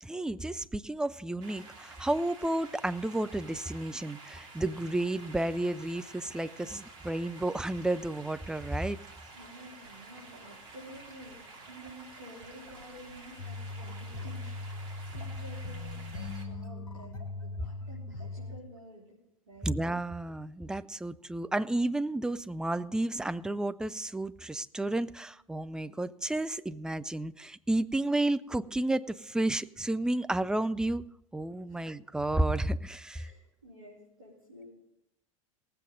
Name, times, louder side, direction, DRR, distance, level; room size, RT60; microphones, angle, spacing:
voice 1, 0.0-9.0 19.6-31.0 31.3-33.3, right 1 dB, 5° right, 12 dB, 0.4 m, -32 dB
sound 1, 1.4-16.5, right 3 dB, 55° right, 2.5 m, -50 dB
voice 2, 9.3-17.2 17.4-19.2 19.5-19.7 31.7-31.9 33.1-34.7, equal, 80° right, -6 dB, 3.6 m, -51 dB
sound 2, 13.4-18.6, left 2 dB, 85° left, 1.5 m, -39 dB
19.0 x 7.9 x 3.8 m, 0.81 s
figure-of-eight pair, 80°, 17 cm